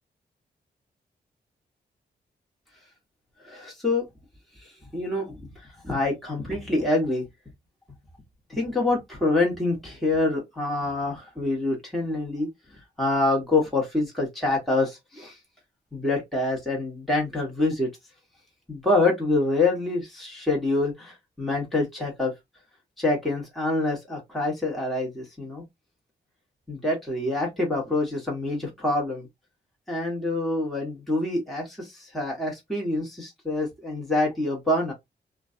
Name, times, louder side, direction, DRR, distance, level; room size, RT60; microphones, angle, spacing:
voice 1, 3.4-4.1 4.6-5.5 5.8-7.2 8.5-12.5 13.0-15.4 15.9-17.9 18.7-22.3 23.0-25.6 26.7-29.3 29.9-34.9, left 2 dB, ahead, 1.2 m, -26 dB
2.5 x 2.2 x 2.4 m
wide cardioid pair, 115°, 18 cm